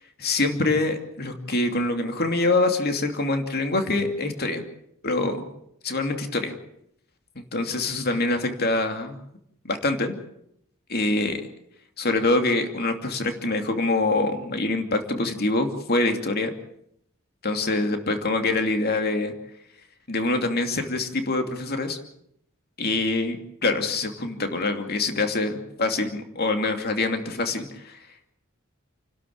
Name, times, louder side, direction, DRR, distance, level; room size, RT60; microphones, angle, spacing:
voice 1, 0.2-4.6 5.0-5.4 5.8-6.5 7.4-9.2 9.7-10.1 10.9-11.4 12.0-16.5 17.4-19.3 20.1-22.0 22.8-28.0, left 2 dB, 50° left, 6 dB, 2.7 m, -25 dB
30.0 x 12.5 x 8.7 m, 0.73 s
head